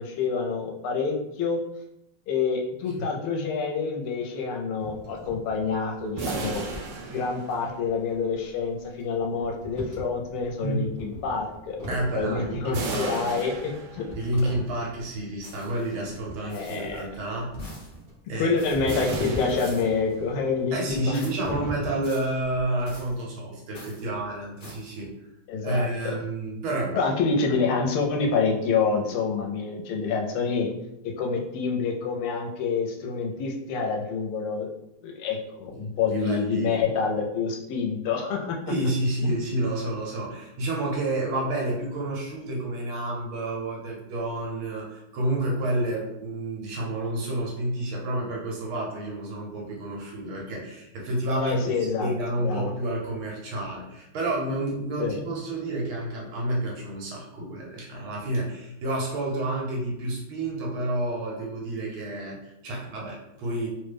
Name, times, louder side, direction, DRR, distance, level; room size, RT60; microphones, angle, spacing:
voice 1, 0.0-1.6 2.3-6.6 7.1-11.8 12.1-14.0 14.4-14.5 16.4-17.0 18.4-21.2 21.5-21.6 25.5-25.9 26.9-30.7 31.0-34.7 35.0-38.6 39.2-39.4 51.3-52.1 52.4-52.7 55.0-55.2, left 5 dB, 85° left, 1 dB, 1.5 m, -27 dB
sound 1, 4.8-23.1, equal, 50° right, 0.6 m, -42 dB
sound 2, 6.2-8.0 12.7-14.4 18.9-20.5, right 3 dB, 90° right, 1.5 m, -35 dB
voice 2, 10.6-10.9 11.9-13.5 14.1-17.6 18.3-18.6 20.7-25.1 25.6-27.1 35.7-36.8 38.7-63.7, right 1 dB, 70° right, -3 dB, 1.6 m, -30 dB
sound 3, 15.4-15.9 16.5-17.0 17.6-18.0 18.6-19.0 19.5-20.0 21.1-21.5 22.0-22.3 22.9-23.2 23.7-24.1 24.6-25.0, left 1 dB, 50° left, 0.8 m, -47 dB
3.6 x 2.1 x 3.3 m, 0.85 s
omnidirectional pair, 2.4 m